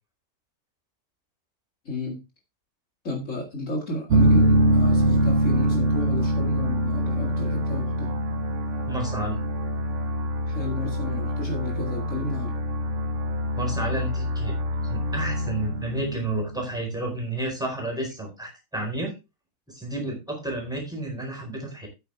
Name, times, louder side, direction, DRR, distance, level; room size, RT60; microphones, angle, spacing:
voice 1, 1.9-2.2 3.0-8.1 10.5-12.5, left 2 dB, 55° left, 1 dB, 2.4 m, -32 dB
sound 1, 4.1-16.8, right 1 dB, 55° right, 1.4 m, -24 dB
voice 2, 8.9-9.4 13.5-14.6 14.8-19.1 19.7-21.9, right 1 dB, ahead, 2 dB, 4.3 m, -31 dB
9.6 x 8.9 x 3.3 m, 0.26 s
omnidirectional pair, 1.6 m